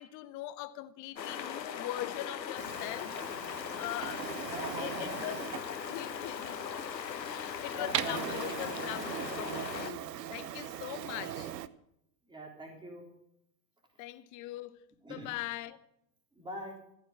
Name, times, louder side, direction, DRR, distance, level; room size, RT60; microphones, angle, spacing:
voice 1, 0.0-3.1 3.4-4.5 4.8-6.6 6.9-11.5 14.0-14.8 15.1-15.8, left 15 dB, 35° left, 1.1 m, -41 dB
sound 1, 1.2-9.9, left 8 dB, 80° left, 1.4 m, -39 dB
Printer, 2.6-11.7, right 11 dB, 70° right, 0.9 m, -40 dB
voice 2, 4.4-5.3 7.2-8.7 12.3-13.0 15.0-15.3 16.4-16.8, equal, 10° right, 3.7 m, -44 dB
15.5 x 8.8 x 7.5 m
hypercardioid pair, 95°, 50 cm